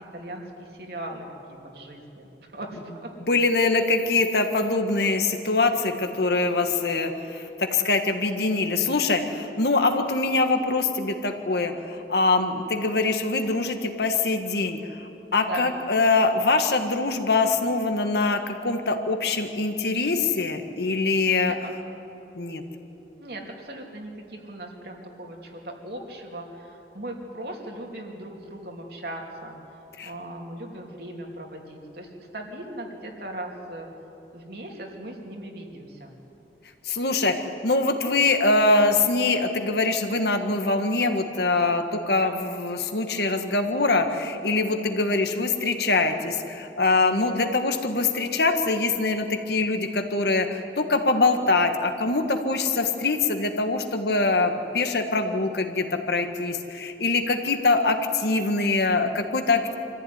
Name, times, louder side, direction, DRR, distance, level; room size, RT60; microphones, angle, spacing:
voice 1, 0.0-2.3 2.5-3.1 15.4-15.7 21.5-21.7 23.2-29.6 30.0-33.9 34.3-36.1, right 1 dB, 60° right, 0 dB, 3.2 m, -38 dB
voice 2, 3.2-14.8 15.3-21.5 22.3-22.6 30.0-30.1 36.8-59.7, left 3 dB, 65° left, 6 dB, 1.7 m, -23 dB
25.5 x 14.5 x 9.7 m, 3.0 s
head